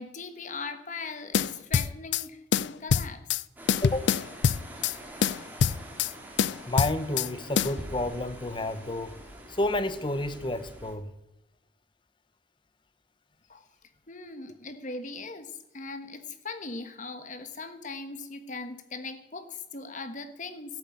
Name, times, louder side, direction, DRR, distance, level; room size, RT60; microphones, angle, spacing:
voice 1, 0.0-3.4 13.5-13.7 14.1-20.8, left 3 dB, 45° left, 1.2 m, -39 dB
sound 1, 1.3-2.2 2.5-3.4 3.7-5.0 5.2-6.1 6.4-7.3 7.6-7.7, left 7 dB, 70° left, 0.4 m, -25 dB
sound 2, 3.6-10.9, equal, 10° right, 2.4 m, -45 dB
voice 2, 6.7-9.2 9.5-11.1, left 1 dB, 25° left, 0.8 m, -30 dB
13.5 x 7.8 x 8.5 m
head